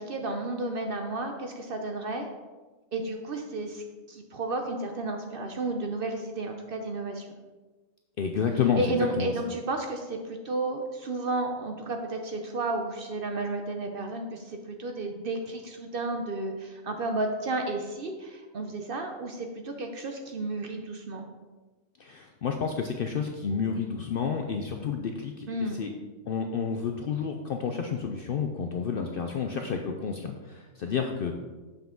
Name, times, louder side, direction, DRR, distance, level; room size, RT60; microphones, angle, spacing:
voice 1, 0.0-2.3 2.9-7.2 8.8-21.3 25.5-25.8, right 2 dB, 55° right, 4 dB, 0.7 m, -32 dB
voice 2, 8.2-9.3 22.0-25.9 26.3-31.4, left 6 dB, 65° left, 4 dB, 0.6 m, -30 dB
7.0 x 5.8 x 3.7 m, 1.3 s
omnidirectional pair, 1.4 m